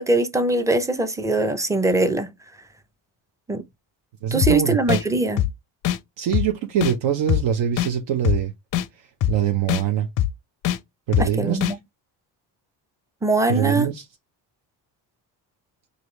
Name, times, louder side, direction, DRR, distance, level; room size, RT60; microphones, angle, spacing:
voice 1, 0.0-2.3 3.5-3.6 4.3-5.4 11.2-11.8 13.2-13.9, right 2 dB, 5° right, 0.5 m, -22 dB
voice 2, 4.2-5.0 6.2-8.5 9.3-10.1 11.1-11.6 13.5-14.0, right 9 dB, 70° right, 0.8 m, -23 dB
sound 1, 4.4-4.5 4.9-5.0 5.4-5.5 5.8-6.0 6.3-6.5 6.8-6.9 7.3-7.4 7.8-7.9 8.2-8.4 8.7-8.9 9.2-9.3 9.7-9.8 10.2-10.3 10.6-10.8 11.1-11.3 11.6-11.7, left 12 dB, 45° left, 0.4 m, -21 dB
4.9 x 2.7 x 3.1 m
cardioid pair, 110°, 45 cm